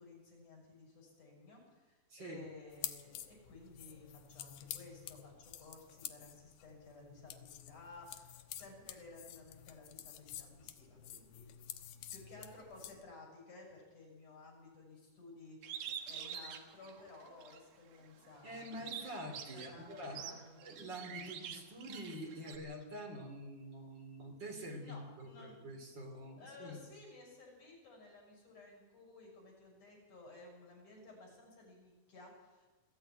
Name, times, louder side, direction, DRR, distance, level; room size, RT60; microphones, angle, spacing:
voice 1, 0.0-11.8 12.1-18.8 19.5-20.8 24.8-25.6 26.4-32.7, left 3 dB, 55° left, -1 dB, 7.9 m, -56 dB
voice 2, 2.1-2.5 18.4-20.4 20.6-26.8, equal, 30° right, 3 dB, 3.4 m, -46 dB
sound 1, 2.7-13.0, left 11 dB, 80° left, 2.9 m, -49 dB
Bird, 15.6-17.6 18.1-22.6, right 8 dB, 80° right, 3.4 m, -46 dB
21.0 x 14.0 x 9.0 m, 1.2 s
omnidirectional pair, 4.3 m